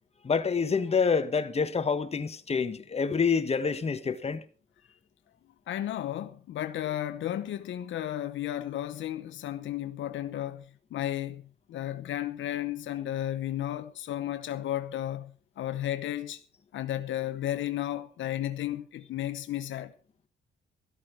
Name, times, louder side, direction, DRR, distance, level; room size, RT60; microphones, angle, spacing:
voice 1, 0.2-4.4, left 5 dB, 30° left, 1.3 m, -27 dB
voice 2, 5.7-11.4 11.7-16.4 16.7-19.9, left 12 dB, 75° left, 0.9 m, -33 dB
13.5 x 13.0 x 4.6 m
cardioid pair, 90°, 20 cm